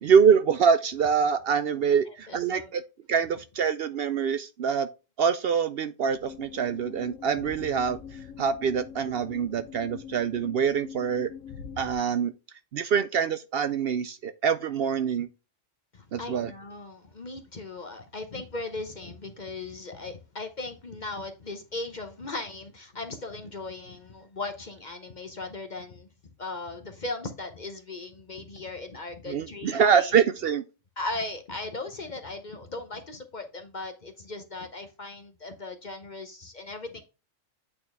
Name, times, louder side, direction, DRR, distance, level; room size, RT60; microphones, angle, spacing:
voice 1, 0.0-2.8 3.1-4.9 5.2-8.0 8.4-11.3 11.8-12.3 12.7-15.3 16.1-16.5 29.3-30.6, right 7 dB, 65° right, 0.6 m, -25 dB
voice 2, 2.1-2.7 15.9-30.2 31.0-37.0, left 2 dB, 40° left, 0.9 m, -38 dB
sound 1, 6.1-11.9, left 7 dB, 85° left, 1.3 m, -43 dB
8.6 x 4.3 x 3.4 m
omnidirectional pair, 1.3 m